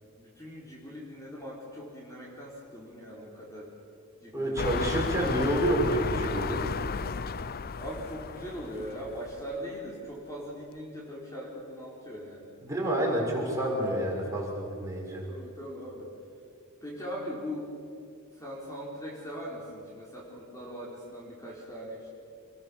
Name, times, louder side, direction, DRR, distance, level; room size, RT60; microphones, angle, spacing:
voice 1, 0.2-3.7 4.2-5.1 7.8-12.5 15.3-16.1 16.8-17.7 18.3-22.1, equal, 15° left, -4 dB, 4.4 m, -40 dB
voice 2, 4.3-6.6 12.6-15.3, right 1 dB, 15° right, -3 dB, 6.1 m, -28 dB
sound 1, 4.6-9.6 10.2-10.3, left 5 dB, 45° left, 0.6 m, -33 dB
27.0 x 21.5 x 7.3 m, 2.4 s
head